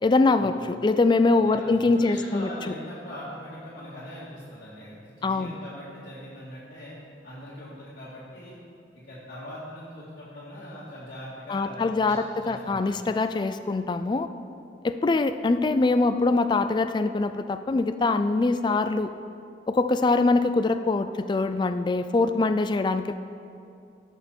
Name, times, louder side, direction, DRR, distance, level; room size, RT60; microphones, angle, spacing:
voice 1, 0.0-2.5 5.2-5.5 11.5-14.3 14.8-19.1 19.7-23.2, left 3 dB, 25° left, 10 dB, 0.3 m, -23 dB
voice 2, 1.4-7.0 7.2-8.6 8.9-12.1 12.4-13.0, equal, 50° left, -10 dB, 1.9 m, -41 dB
16.5 x 6.4 x 4.4 m, 2.6 s
head